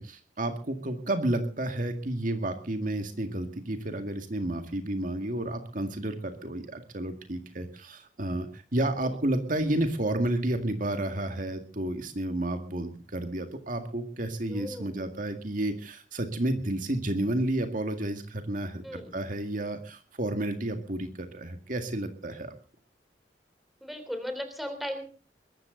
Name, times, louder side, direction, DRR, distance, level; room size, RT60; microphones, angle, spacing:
voice 1, 0.0-22.5, right 1 dB, 50° right, 6 dB, 2.0 m, -31 dB
voice 2, 14.5-15.1 18.8-19.2 23.8-25.0, equal, ahead, 7 dB, 3.3 m, -37 dB
22.5 x 13.5 x 3.9 m, 0.38 s
head